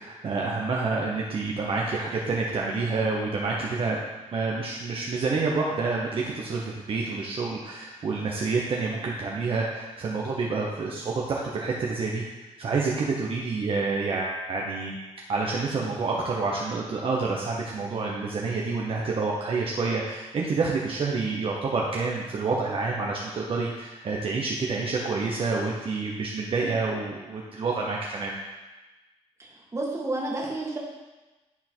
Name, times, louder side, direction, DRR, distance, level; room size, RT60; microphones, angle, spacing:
voice 1, 0.0-4.0 4.3-12.2 12.6-14.9 15.3-28.3, right 4 dB, 50° right, -3 dB, 1.0 m, -28 dB
voice 2, 29.7-30.8, right 2 dB, 25° right, -3 dB, 1.9 m, -30 dB
11.0 x 3.7 x 4.6 m, 1.2 s
cardioid pair, 90°, 12 cm